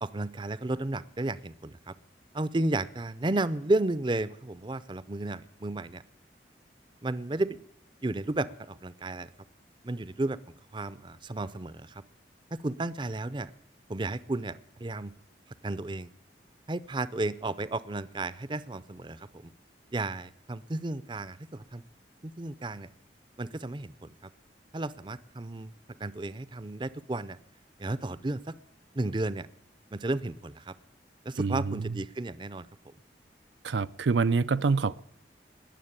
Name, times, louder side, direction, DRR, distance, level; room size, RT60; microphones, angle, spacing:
voice 1, 0.0-1.9 2.3-6.0 7.0-7.7 8.0-9.3 9.8-10.4 10.7-12.0 12.5-13.5 13.9-15.1 15.6-16.1 16.7-19.5 19.9-21.8 22.2-22.9 23.4-24.1 24.7-25.7 26.0-27.4 27.8-28.5 28.9-29.5 29.9-30.7 31.2-32.7, right 2 dB, 25° right, 17 dB, 0.6 m, -33 dB
voice 2, 31.4-31.9 33.6-35.0, right 4 dB, 80° right, 13 dB, 0.5 m, -26 dB
20.5 x 7.5 x 8.8 m, 0.75 s
head